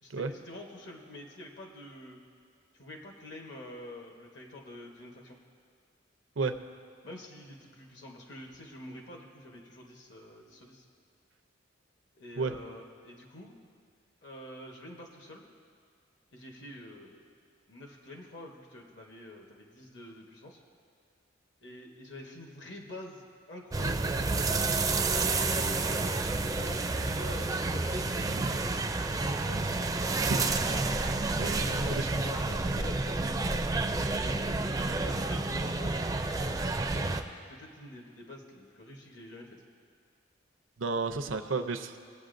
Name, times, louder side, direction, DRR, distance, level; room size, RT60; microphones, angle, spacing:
voice 1, 0.0-2.2 2.7-5.4 7.0-10.8 12.1-13.5 14.2-15.4 16.3-17.2 17.7-20.6 21.6-24.8 25.5-28.1 29.1-29.9 31.6-36.1 36.6-37.2 37.5-39.6, left 1 dB, 65° left, 1 dB, 1.1 m, -47 dB
sound 1, 23.7-37.2, right 3 dB, 20° right, 0.4 m, -30 dB
voice 2, 28.2-28.6 30.3-30.7 31.4-32.1 40.8-42.0, right 3 dB, 85° right, 9 dB, 0.6 m, -32 dB
19.5 x 8.2 x 2.6 m, 2.2 s
head